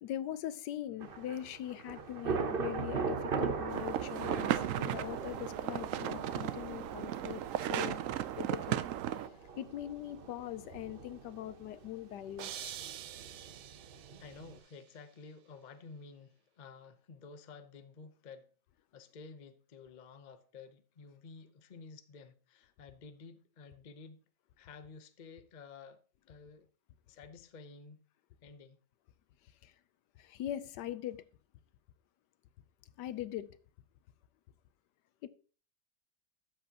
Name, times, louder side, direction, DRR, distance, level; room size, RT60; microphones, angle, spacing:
voice 1, 0.0-8.9 9.6-12.7 29.6-29.7 30.2-31.2 33.0-33.6 35.2-35.3, left 12 dB, 75° left, 1.2 m, -41 dB
Thunder / Rain, 1.0-14.6, right 5 dB, 50° right, 0.6 m, -40 dB
sound 1, 3.7-9.3, right 11 dB, 90° right, 0.7 m, -36 dB
sound 2, 12.4-14.5, right 12 dB, 70° right, 1.2 m, -46 dB
voice 2, 14.2-18.5 18.9-24.2 24.6-26.0 26.3-26.7 27.1-28.1 28.4-28.8, left 4 dB, 55° left, 0.5 m, -52 dB
12.5 x 7.6 x 2.9 m
omnidirectional pair, 1.9 m